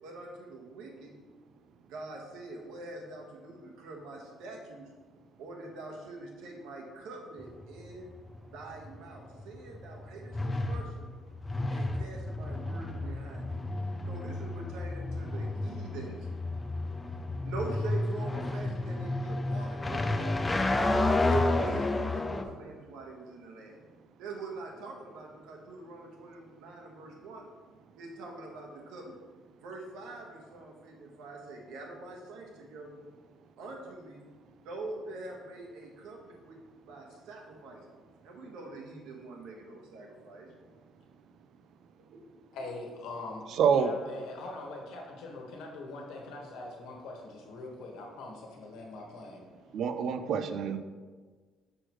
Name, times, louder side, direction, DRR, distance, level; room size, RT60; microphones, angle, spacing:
voice 1, 0.0-1.1 1.9-4.9 5.4-8.0 8.5-11.1 11.7-13.6 14.1-16.2 17.4-21.1 21.5-23.8 24.2-27.5 28.0-29.2 29.6-33.0 33.6-34.2 34.6-36.6 36.9-40.5, right 2 dB, 85° right, 0 dB, 1.3 m, -44 dB
sound 1, 7.4-22.4, left 2 dB, 15° left, 0.4 m, -31 dB
voice 2, 42.5-43.5 43.7-49.4, left 2 dB, 85° left, 0 dB, 1.3 m, -42 dB
voice 3, 43.5-43.9 49.7-50.8, right 7 dB, 60° right, 10 dB, 0.5 m, -26 dB
6.3 x 6.2 x 3.1 m, 1.4 s
cardioid pair, 135°, 0 cm